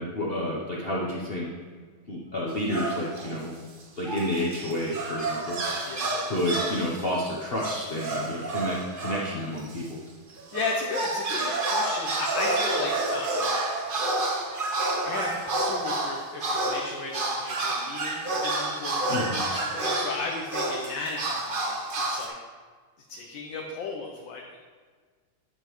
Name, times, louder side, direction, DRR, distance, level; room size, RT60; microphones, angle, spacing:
voice 1, 0.0-1.5 2.1-3.6 4.0-5.9 6.2-10.0 19.1-19.4, left 1 dB, 50° left, -4 dB, 0.7 m, -30 dB
sound 1, 2.5-3.4 3.8-9.9 10.3-22.3, right 2 dB, 85° right, 0.4 m, -29 dB
voice 2, 5.8-6.2 10.5-13.5 15.0-22.4 23.1-24.6, left 3 dB, 70° left, 0 dB, 1.5 m, -35 dB
10.5 x 6.9 x 3.1 m, 1.5 s
omnidirectional pair, 2.2 m